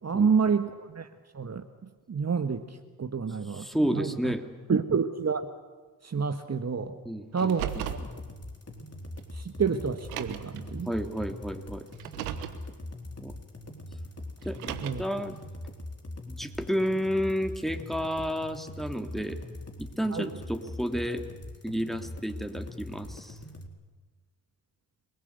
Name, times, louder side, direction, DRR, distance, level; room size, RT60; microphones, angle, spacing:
voice 1, 0.0-1.1 1.3-1.6 2.1-3.7 3.9-4.3 4.7-5.4 6.0-7.0 7.3-8.0 9.3-10.9 14.8-15.0 20.1-20.3, right 6 dB, 35° right, 7 dB, 1.7 m, -28 dB
voice 2, 3.5-4.4 7.0-7.5 10.9-11.9 13.2-13.3 14.4-15.4 16.3-19.4 19.8-21.2 21.6-23.4, equal, ahead, 5 dB, 3.0 m, -31 dB
Car, 7.4-8.1 9.2-9.3 10.0-10.6 11.9-12.6 14.4-15.2, right 11 dB, 85° right, 1.3 m, -36 dB
sound 1, 7.7-23.7, left 1 dB, 35° left, 4.3 m, -42 dB
28.0 x 20.5 x 8.1 m, 1.3 s
hypercardioid pair, 40°, 45 cm